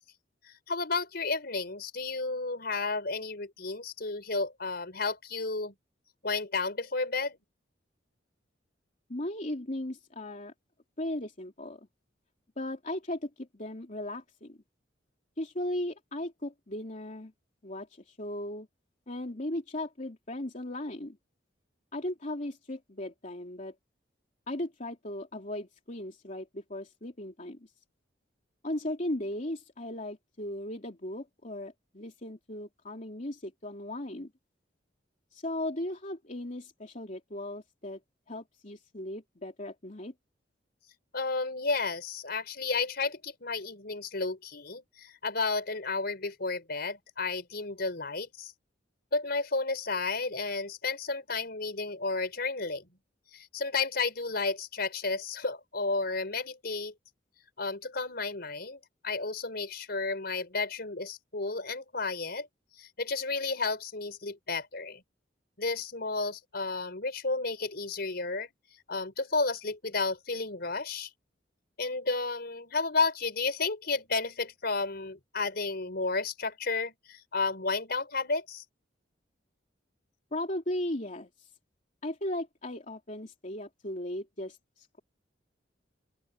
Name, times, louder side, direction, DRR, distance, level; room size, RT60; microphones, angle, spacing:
voice 1, 0.4-5.7 6.2-7.4 41.1-48.5 49.1-52.9 53.3-56.9 57.6-62.5 62.8-65.0 65.6-68.5 68.9-71.1 71.8-78.6, left 3 dB, 60° left, 5.0 m, -32 dB
voice 2, 9.1-10.5 11.0-11.9 12.6-14.6 15.4-17.3 17.6-18.7 19.1-21.2 21.9-23.7 24.5-27.7 28.6-34.3 35.3-38.0 38.3-40.1 80.3-81.5 82.0-85.0, left 1 dB, 45° left, 3.2 m, -37 dB
open air
head